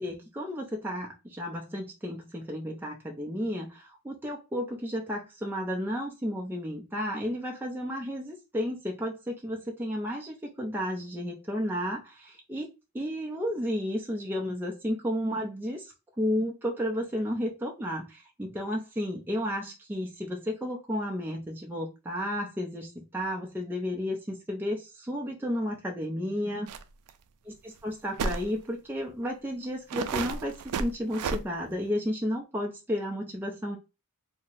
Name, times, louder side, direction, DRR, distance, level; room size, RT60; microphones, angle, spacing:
voice 1, 0.0-12.7 12.9-26.7 27.6-33.8, equal, 10° right, -1 dB, 0.4 m, -32 dB
sound 1, 26.7-26.8 27.1-27.2 28.2-28.5 29.2-29.3 29.9-31.4, right 5 dB, 80° right, 0.3 m, -31 dB
2.6 x 2.0 x 3.8 m, 0.27 s
head